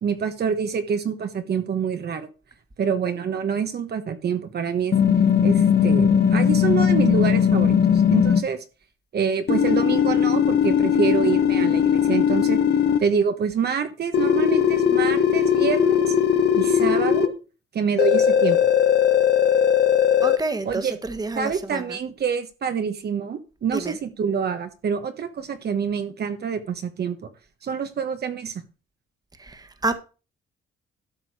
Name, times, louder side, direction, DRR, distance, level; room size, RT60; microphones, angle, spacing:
voice 1, 0.0-2.3 2.8-4.9 5.4-8.6 9.1-12.6 13.0-16.1 16.5-17.3 17.7-18.6 20.6-21.0 21.3-27.3 27.6-28.6, right 6 dB, 55° right, 1.4 m, -26 dB
sound 1, 4.9-8.4 9.5-13.0 14.1-17.3 18.0-20.4, left 8 dB, 55° left, 1.6 m, -19 dB
voice 2, 20.2-21.8 23.7-23.9 29.4-29.9, right 3 dB, 20° right, 1.6 m, -29 dB
12.5 x 6.3 x 4.9 m
cardioid pair, 90°, 20 cm